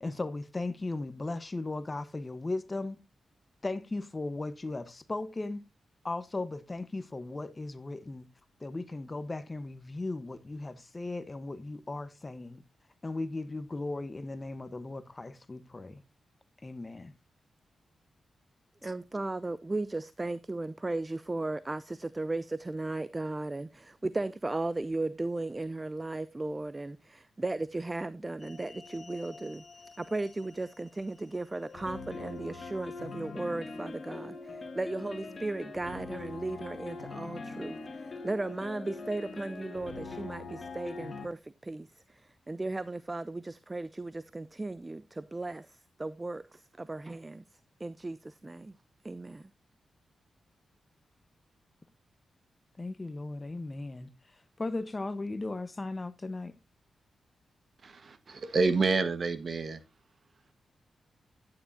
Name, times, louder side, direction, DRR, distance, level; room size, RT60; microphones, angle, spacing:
voice 1, 0.0-3.0 3.6-5.6 6.0-8.3 8.6-12.6 13.0-16.0 16.6-17.1 18.8-18.9 52.8-56.5, left 2 dB, 30° left, 1.0 m, -37 dB
voice 2, 18.8-29.6 30.0-47.4 47.8-48.7 49.0-49.5, right 2 dB, 25° right, 0.5 m, -36 dB
sound 1, 28.4-41.3, left 3 dB, 45° left, 2.3 m, -43 dB
voice 3, 57.8-59.8, right 4 dB, 50° right, 1.3 m, -28 dB
11.0 x 9.7 x 2.7 m
cardioid pair, 75°, 0 cm